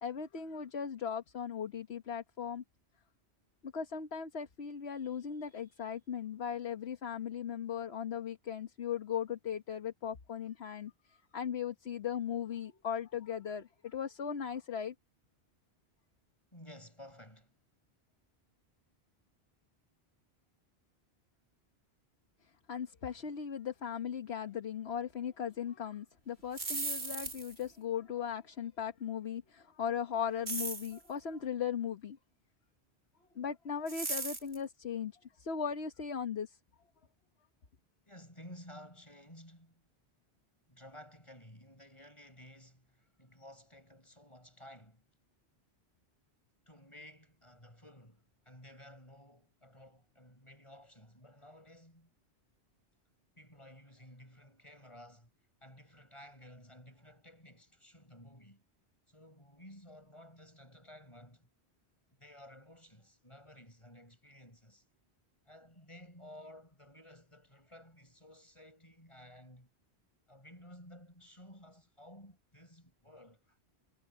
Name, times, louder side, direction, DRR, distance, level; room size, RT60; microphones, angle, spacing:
voice 1, 0.0-2.6 3.6-14.9 22.7-32.2 33.3-35.1 35.4-36.6, left 8 dB, 75° left, 1.5 m, -38 dB
voice 2, 16.5-17.5 23.2-23.3 38.1-39.8 40.7-45.0 46.7-52.1 53.4-55.3 55.6-58.6 59.1-61.5 62.2-64.8 65.5-69.7 70.3-73.6, left 1 dB, 25° left, 8.2 m, -55 dB
sound 1, 26.4-27.7 30.5-31.0 33.9-34.6, right 3 dB, 80° right, 2.9 m, -37 dB
omnidirectional pair, 1.1 m